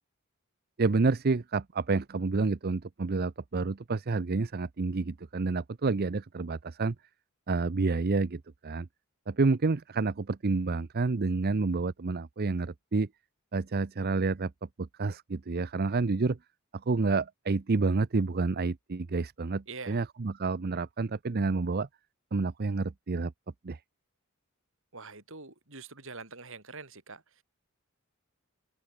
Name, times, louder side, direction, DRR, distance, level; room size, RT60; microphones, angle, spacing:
voice 1, 0.8-7.0 7.5-8.9 9.3-13.1 13.5-14.5 14.8-16.4 16.9-21.9 22.3-23.3 23.6-23.8, right 3 dB, 45° right, 0.6 m, -29 dB
voice 2, 19.7-20.0 24.9-27.4, right 4 dB, 65° right, 5.8 m, -45 dB
open air
head